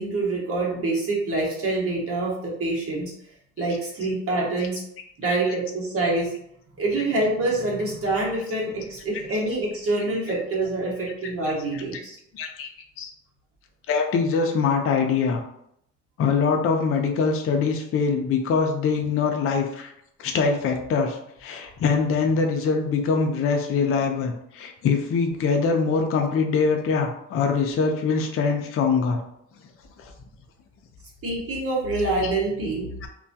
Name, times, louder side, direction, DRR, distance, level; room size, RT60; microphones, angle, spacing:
voice 1, 0.0-3.1 3.6-4.8 5.2-6.3 6.8-12.2 31.2-32.9, right 2 dB, 50° right, -4 dB, 1.0 m, -26 dB
voice 2, 5.2-5.6 7.0-7.1 10.0-10.1 11.7-12.0 12.4-12.7 13.0-13.1 13.9-15.4 16.2-19.9 20.2-29.2 30.0-30.1 32.2-32.3 33.0-33.1, left 5 dB, 45° left, 3 dB, 0.4 m, -23 dB
2.2 x 2.2 x 2.7 m, 0.74 s
cardioid pair, 90°, 30 cm